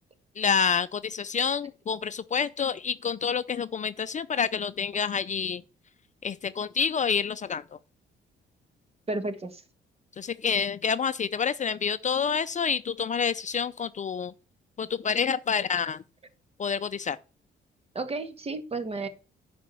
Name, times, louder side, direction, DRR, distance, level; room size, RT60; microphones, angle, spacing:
voice 1, 0.4-5.6 6.2-7.6 10.2-14.3 14.8-16.0 16.6-17.2, left 6 dB, 40° left, 0.5 m, -28 dB
voice 2, 9.1-9.6 18.0-19.1, right 3 dB, 30° right, 1.7 m, -32 dB
10.5 x 5.1 x 7.0 m
cardioid pair, 90°, 20 cm